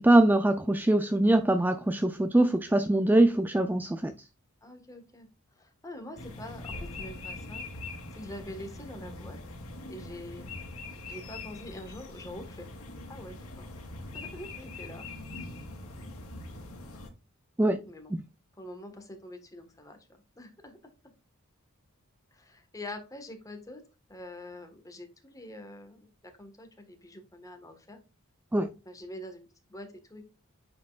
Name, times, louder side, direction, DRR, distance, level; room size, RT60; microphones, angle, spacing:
voice 1, 0.0-4.1 17.6-17.8 18.1-18.2 28.5-28.7, right 1 dB, 10° right, 0.4 m, -23 dB
voice 2, 4.6-5.3 5.5-7.6 8.1-9.4 9.9-10.5 11.1-12.7 13.1-13.7 14.1-15.0 17.8-18.2 18.6-20.0 20.4-20.8 22.3-23.8 24.1-28.0 28.8-30.3, left 1 dB, 15° left, 1.4 m, -45 dB
sound 1, 6.2-17.1, left 2 dB, 85° left, 2.3 m, -42 dB
9.2 x 4.4 x 2.4 m
head